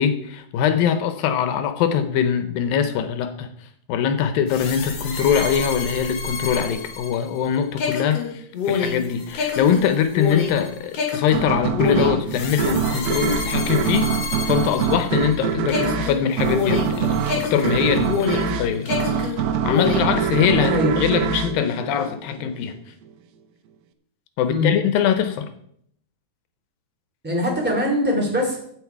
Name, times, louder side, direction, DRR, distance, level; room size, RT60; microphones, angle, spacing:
voice 1, 0.0-3.5 3.9-14.2 14.4-19.4 19.6-22.8 24.4-25.5, left 8 dB, 80° left, 9 dB, 2.5 m, -22 dB
sound 1, 4.5-15.4 15.7-18.6 18.9-20.2, left 5 dB, 50° left, 2.6 m, -27 dB
sound 2, 11.3-22.6, right 7 dB, 90° right, 2.6 m, -24 dB
voice 2, 20.6-20.9 24.5-24.7 27.2-28.6, left 1 dB, 5° right, -1 dB, 2.5 m, -22 dB
15.0 x 6.4 x 4.7 m, 0.67 s
omnidirectional pair, 4.1 m